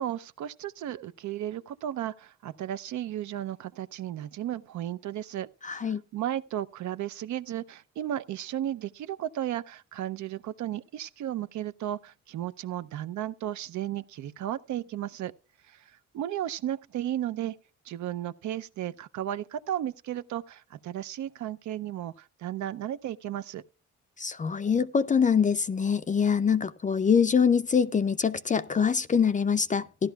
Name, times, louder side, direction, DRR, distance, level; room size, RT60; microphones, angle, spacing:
voice 1, 0.0-15.3 15.7-17.6 17.8-23.6, right 11 dB, 75° right, 0.6 m, -34 dB
voice 2, 5.6-6.0 24.2-30.1, left 6 dB, 25° left, 0.4 m, -24 dB
15.5 x 11.5 x 2.3 m
cardioid pair, 120°, 30 cm